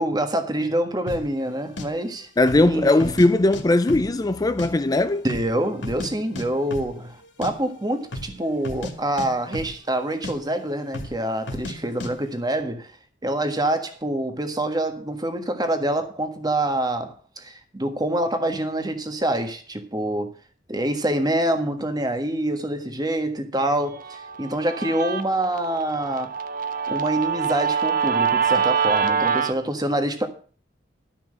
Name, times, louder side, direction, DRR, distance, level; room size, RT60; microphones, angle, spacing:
voice 1, 0.0-2.3 2.7-3.1 5.2-12.9 13.2-20.3 20.7-26.3 26.9-30.3, right 1 dB, 20° right, 1.5 m, -26 dB
sound 1, 1.1-1.3 1.8-1.9 2.4-2.7 3.0-3.6 3.9-4.7 5.0-5.1 5.3-6.1 6.4-6.5 6.7-6.9 7.2-7.5 8.0-8.3 8.6-8.9 9.2-10.0 10.2-10.4 10.9-11.2 11.5-11.8 12.0-12.1, left 1 dB, 80° left, 2.3 m, -33 dB
voice 2, 2.4-5.2, left 2 dB, 20° left, 0.5 m, -19 dB
Guitar, 24.0-29.5, right 6 dB, 50° right, 1.0 m, -25 dB
13.0 x 6.0 x 7.6 m
head